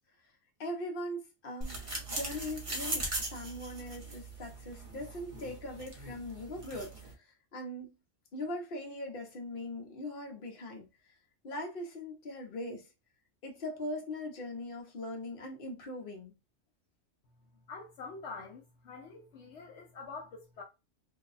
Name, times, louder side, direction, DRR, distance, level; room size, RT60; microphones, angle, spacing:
voice 1, 0.6-8.0 8.3-10.9 11.4-12.9 13.4-16.3, left 1 dB, 50° left, 1.0 m, -40 dB
sound 1, 1.6-7.1, right 2 dB, 30° right, 0.8 m, -40 dB
voice 2, 17.7-20.6, left 4 dB, 70° left, 1.0 m, -46 dB
2.7 x 2.2 x 4.0 m
omnidirectional pair, 1.3 m